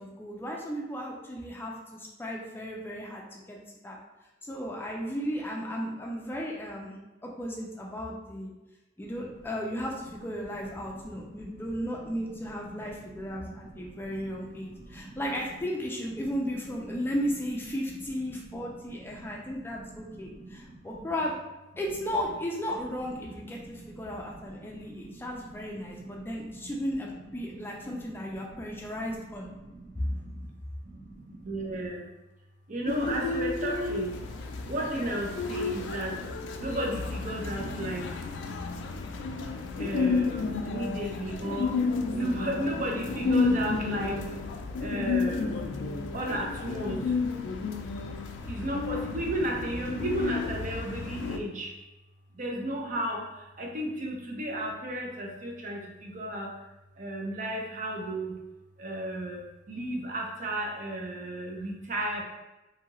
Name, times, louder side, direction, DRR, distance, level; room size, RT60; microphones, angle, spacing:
voice 1, 0.0-3.6 3.8-4.0 4.5-7.0 7.2-8.5 9.0-21.4 21.8-29.5 29.9-30.1, equal, 10° left, -2 dB, 0.3 m, -35 dB
voice 2, 10.8-11.9 12.2-13.0 13.3-15.2 16.9-17.0 18.7-18.8 19.2-19.4 19.8-21.1 23.4-26.7 27.5-29.1 29.3-30.5 30.8-32.0 32.7-34.2 34.6-36.2 36.6-38.1 39.8-41.8 42.1-44.2 44.8-45.7 46.1-47.1 48.5-51.7 52.4-56.5 57.0-58.4 58.8-59.4 59.7-62.2, right 1 dB, 45° right, 0 dB, 0.5 m, -35 dB
sound 1, 32.9-51.4, left 4 dB, 90° left, 0.3 m, -31 dB
2.7 x 2.4 x 2.9 m, 1.0 s
head